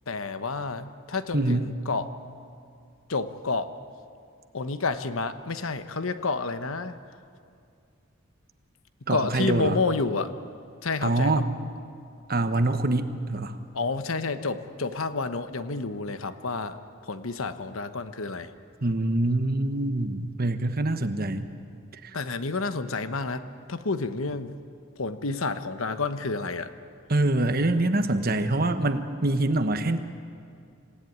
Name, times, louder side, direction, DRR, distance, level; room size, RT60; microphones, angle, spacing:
voice 1, 0.1-2.1 3.1-3.7 4.5-7.0 9.1-10.3 10.8-11.4 13.7-16.8 17.1-18.5 22.1-24.6 25.0-26.7, left 3 dB, 75° left, 10 dB, 1.1 m, -29 dB
voice 2, 1.3-1.7 9.1-9.8 11.0-11.5 12.3-13.6 18.8-21.5 22.0-22.2 27.1-30.0, right 2 dB, 45° right, 9 dB, 1.2 m, -25 dB
27.0 x 17.0 x 9.5 m, 2.4 s
head